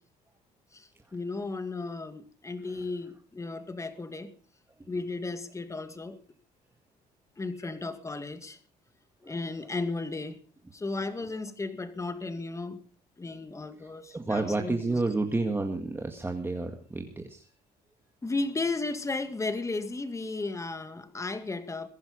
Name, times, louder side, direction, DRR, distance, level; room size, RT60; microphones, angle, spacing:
voice 1, 0.7-4.3 4.9-6.2 7.4-8.6 9.2-10.4 10.7-12.8 13.2-15.0 18.2-21.9, left 3 dB, 20° left, 2.0 m, -34 dB
voice 2, 14.1-17.5, right 2 dB, 15° right, 2.0 m, -30 dB
22.5 x 10.5 x 5.3 m
cardioid pair, 110°, 17 cm